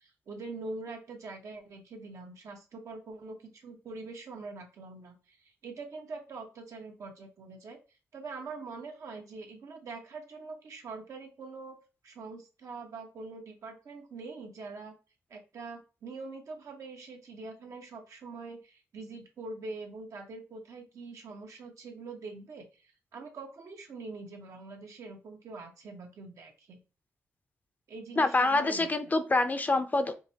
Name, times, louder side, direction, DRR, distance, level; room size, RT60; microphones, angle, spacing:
voice 1, 0.0-7.8 8.1-11.8 12.0-14.9 15.3-26.8 27.9-29.1, right 3 dB, 70° right, 2 dB, 1.0 m, -44 dB
voice 2, 28.2-30.1, left 2 dB, 30° left, 10 dB, 0.5 m, -26 dB
5.0 x 2.0 x 2.7 m, 0.32 s
cardioid pair, 65°, 6 cm